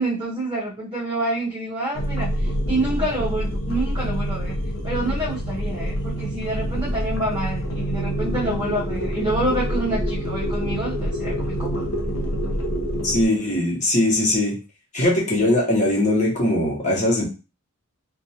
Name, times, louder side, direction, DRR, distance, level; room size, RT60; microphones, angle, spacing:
voice 1, 0.0-2.3 2.7-4.6 4.8-11.9, right 1 dB, 20° right, -7 dB, 0.6 m, -27 dB
sound 1, 1.9-13.3, equal, 65° left, 0.6 m, -26 dB
voice 2, 13.0-14.6 14.9-17.2, left 1 dB, 35° left, -4 dB, 1.0 m, -20 dB
2.5 x 2.2 x 2.7 m, 0.30 s
head